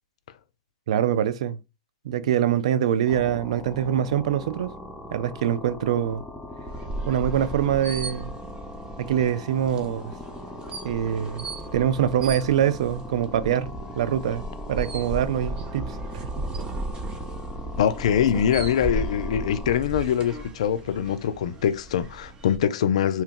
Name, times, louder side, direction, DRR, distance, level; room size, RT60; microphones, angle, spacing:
voice 1, 0.9-1.6 2.0-4.7 5.1-6.2 7.1-8.3 9.0-10.1 10.8-16.5, right 10 dB, 70° right, 0.4 m, -24 dB
sound 1, 3.1-19.8, left 1 dB, 5° left, 0.6 m, -40 dB
sound 2, 6.6-22.6, right 2 dB, 25° right, 0.7 m, -36 dB
voice 2, 17.8-23.2, left 9 dB, 70° left, 0.3 m, -23 dB
2.8 x 2.2 x 3.6 m
hypercardioid pair, 110°, 4 cm